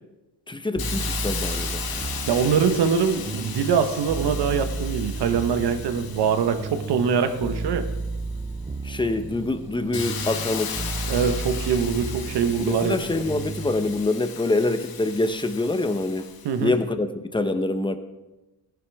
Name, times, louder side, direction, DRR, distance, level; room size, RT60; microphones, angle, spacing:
voice 1, 0.5-2.1 8.8-10.9 12.6-16.3 16.6-17.1 17.3-18.0, left 2 dB, 10° left, 9 dB, 0.9 m, -25 dB
Hiss, 0.8-8.4 8.9-16.6, left 7 dB, 60° left, 1.5 m, -36 dB
sound 1, 0.8-14.1, right 3 dB, 15° right, 0.7 m, -33 dB
voice 2, 2.3-7.9 11.1-13.2 16.4-16.7, right 6 dB, 65° right, 8 dB, 1.3 m, -23 dB
15.5 x 11.0 x 3.6 m, 1.0 s
cardioid pair, 95°, 42 cm